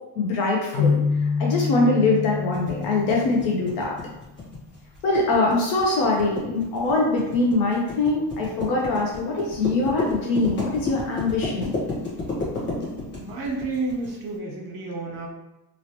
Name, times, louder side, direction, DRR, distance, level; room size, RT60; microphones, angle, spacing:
voice 1, 0.2-1.0 1.4-3.9 5.0-11.7, left 3 dB, 60° left, -2 dB, 0.8 m, -23 dB
sound 1, 0.7-4.3, left 5 dB, 80° left, 1.2 m, -26 dB
sound 2, 2.5-14.1, left 3 dB, 25° left, 1.1 m, -32 dB
voice 2, 13.2-15.3, right 3 dB, 55° right, -2 dB, 1.3 m, -30 dB
3.1 x 2.7 x 2.9 m, 0.95 s
cardioid pair, 130°, 45 cm